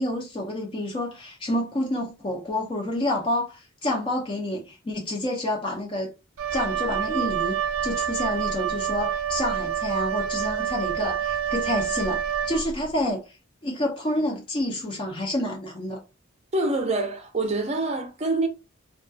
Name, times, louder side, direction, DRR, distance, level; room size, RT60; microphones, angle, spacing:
voice 1, 0.0-6.1 6.5-13.2 13.6-16.0, left 1 dB, 25° left, 0.4 m, -28 dB
Wind instrument woodwind instrument, 6.4-12.9, right 9 dB, 90° right, 0.4 m, -27 dB
voice 2, 16.5-18.5, right 2 dB, 30° right, 0.5 m, -25 dB
2.3 x 2.2 x 2.5 m
head